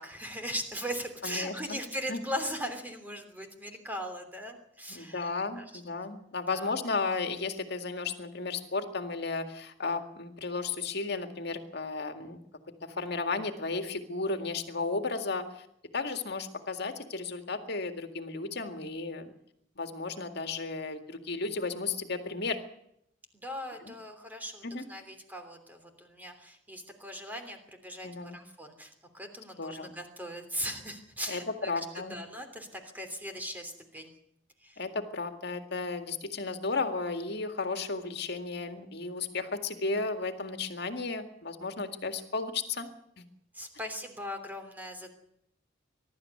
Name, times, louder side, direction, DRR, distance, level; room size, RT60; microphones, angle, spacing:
voice 1, 0.0-5.8 6.5-6.7 23.3-34.1 34.6-34.8 43.5-45.1, equal, 10° right, 5 dB, 3.1 m, -39 dB
voice 2, 1.2-1.8 2.1-2.2 4.9-12.4 12.8-15.7 15.9-19.3 19.8-22.6 23.8-24.0 24.6-24.8 28.0-28.4 29.6-29.9 31.3-32.2 34.8-42.9, left 3 dB, 60° left, 7 dB, 2.0 m, -34 dB
22.0 x 12.5 x 9.6 m, 0.76 s
head